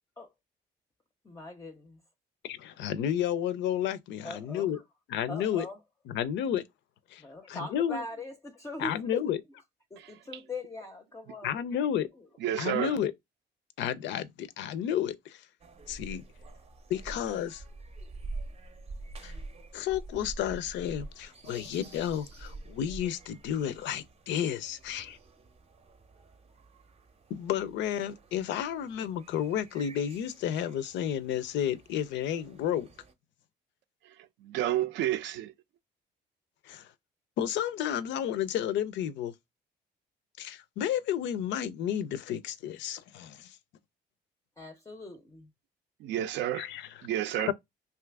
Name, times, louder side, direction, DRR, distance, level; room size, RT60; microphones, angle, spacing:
voice 1, 1.2-2.0 4.2-4.7 5.3-5.8 7.2-9.3 9.9-11.5 44.6-45.5, left 2 dB, 15° left, 0.4 m, -41 dB
voice 2, 2.4-4.8 5.1-5.7 6.1-6.6 7.1-7.2 7.5-8.0 8.8-9.4 11.4-12.1 12.6-13.1 13.8-15.5 15.9-16.2 16.9-17.6 19.2-19.3 19.7-25.2 27.3-32.9 36.6-36.9 37.4-39.3 40.4-43.6 46.5-46.9 47.5-47.6, left 10 dB, 80° left, 0.4 m, -31 dB
voice 3, 12.4-12.9 34.4-35.5 46.0-46.7 47.0-47.5, right 12 dB, 80° right, 0.4 m, -30 dB
sound 1, 15.6-33.1, right 2 dB, 35° right, 0.6 m, -47 dB
2.7 x 2.4 x 3.3 m
cardioid pair, 90°, 19 cm